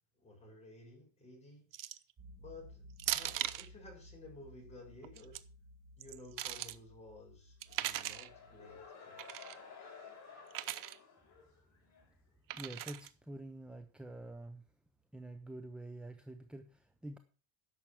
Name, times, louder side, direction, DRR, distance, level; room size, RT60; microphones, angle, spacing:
voice 1, 0.1-1.7 2.4-5.4 6.0-9.3, left 2 dB, 15° left, 6.0 m, -54 dB
sound 1, 1.7-2.1 3.0-3.7 5.0-5.4 6.0-6.8 7.6-8.3 9.2-9.6 10.5-11.0 12.5-13.1, right 13 dB, 45° right, 0.8 m, -39 dB
sound 2, 2.2-8.8, left 1 dB, 15° right, 2.1 m, -57 dB
sound 3, 7.6-12.1, left 5 dB, 40° left, 4.9 m, -54 dB
voice 2, 12.5-14.7 15.1-17.2, right 1 dB, ahead, 0.5 m, -47 dB
11.0 x 6.9 x 7.3 m
cardioid pair, 165°, 44 cm